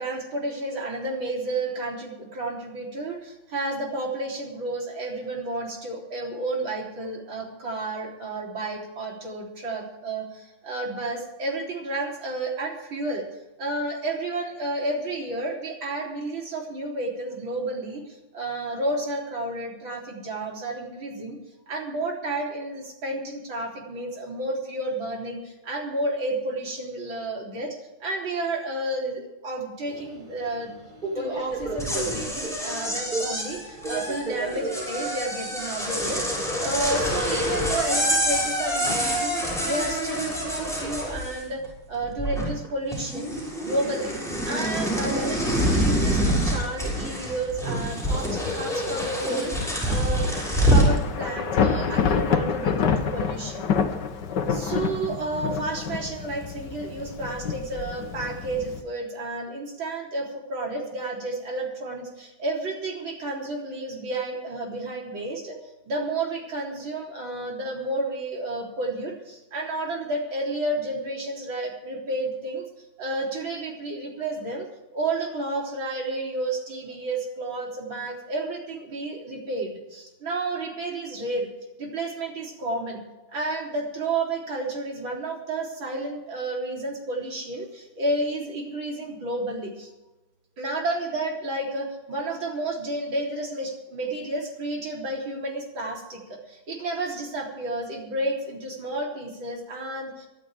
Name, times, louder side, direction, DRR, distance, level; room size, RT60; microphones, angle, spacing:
voice 1, 0.0-21.4 21.7-30.7 31.2-41.6 41.9-44.1 44.4-50.3 50.7-53.7 54.5-81.5 81.8-83.0 83.3-89.9 90.6-100.3, right 2 dB, 65° right, -1 dB, 4.3 m, -31 dB
Subway metro underground, 29.9-39.6, right 2 dB, 20° right, 2.5 m, -36 dB
sound 1, 31.6-41.7 41.9-42.7 42.9-51.0, equal, ahead, 6.5 m, -26 dB
Thunder / Rain, 47.9-58.8, left 6 dB, 60° left, 1.6 m, -28 dB
24.0 x 12.0 x 3.5 m, 1.0 s
omnidirectional pair, 2.4 m